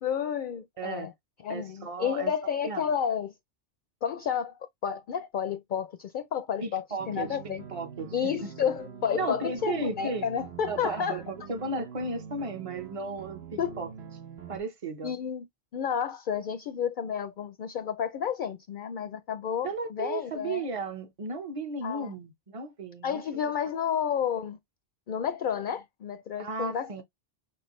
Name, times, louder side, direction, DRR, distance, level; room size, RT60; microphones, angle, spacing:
voice 1, 0.0-1.1 1.4-3.3 4.0-4.5 4.8-7.6 8.1-11.2 13.6-13.8 15.0-15.4 15.7-20.7 21.8-22.1 23.0-24.6 25.1-27.0, left 8 dB, 60° left, 0.6 m, -31 dB
voice 2, 0.8-1.1 1.5-2.3 2.6-2.8 6.6-7.4 7.7-8.3 9.1-10.2 10.7-13.4 13.8-13.9 14.5-15.1 19.6-23.2 26.4-27.0, right 3 dB, 35° right, 1.0 m, -34 dB
sound 1, 7.0-14.6, right 7 dB, 75° right, 1.1 m, -44 dB
6.0 x 2.3 x 3.1 m
omnidirectional pair, 1.1 m